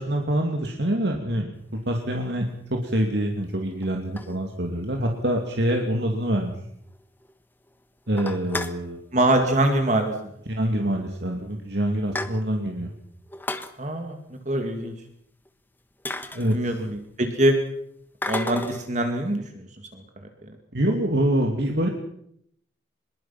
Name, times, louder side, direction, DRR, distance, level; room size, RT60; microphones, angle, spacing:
voice 1, 0.0-2.4 2.7-6.5 8.1-9.0 10.6-12.9 16.3-16.7 20.7-21.9, right 1 dB, 65° right, 2 dB, 2.6 m, -25 dB
sound 1, 1.9-2.1 2.8-2.9 3.8-4.8 5.2-5.3 5.6-5.7 6.0-6.1 6.4-6.5 6.9-7.3 7.7-7.8 8.1-8.9 10.0-10.2 10.5-10.6 11.3-11.4 11.7-12.7 13.3-13.7 15.4-15.5 16.0-17.1 18.2-18.9, left 2 dB, 10° left, 1.2 m, -33 dB
voice 2, 9.1-10.3 13.8-14.9 16.5-17.5 18.2-19.6 19.9-20.0, right 1 dB, 40° right, 5 dB, 2.4 m, -24 dB
25.0 x 21.5 x 5.9 m, 0.72 s
head